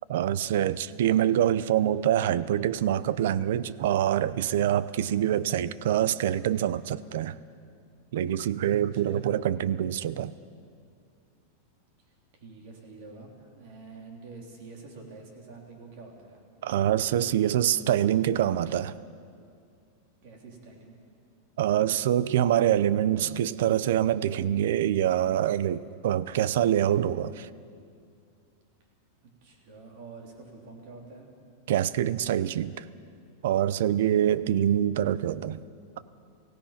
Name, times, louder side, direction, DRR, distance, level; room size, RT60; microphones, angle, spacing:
voice 1, 0.1-7.4 8.1-10.3 16.6-18.9 21.6-27.5 31.7-32.8 33.4-35.6 36.0-36.1, right 11 dB, 60° right, 0.6 m, -25 dB
voice 2, 8.9-9.2 12.0-16.4 20.2-21.0 29.4-31.3, right 3 dB, 45° right, 3.4 m, -47 dB
28.0 x 16.5 x 5.8 m
supercardioid pair, 180°, 0 cm